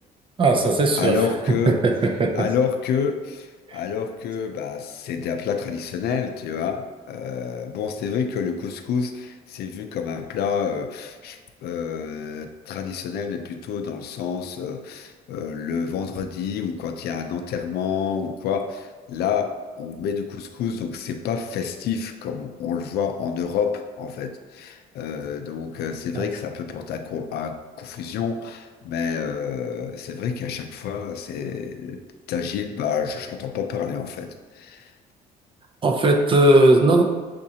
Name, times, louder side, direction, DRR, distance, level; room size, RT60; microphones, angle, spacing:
voice 1, 0.4-1.2 1.7-1.9 2.2-2.4 3.7-3.8 26.1-26.2 35.8-37.0, right 2 dB, 30° right, 2 dB, 0.6 m, -17 dB
voice 2, 1.0-1.8 2.3-34.9, left 6 dB, 70° left, 6 dB, 0.5 m, -28 dB
7.1 x 2.5 x 2.8 m, 1.4 s
cardioid pair, 110°, 17 cm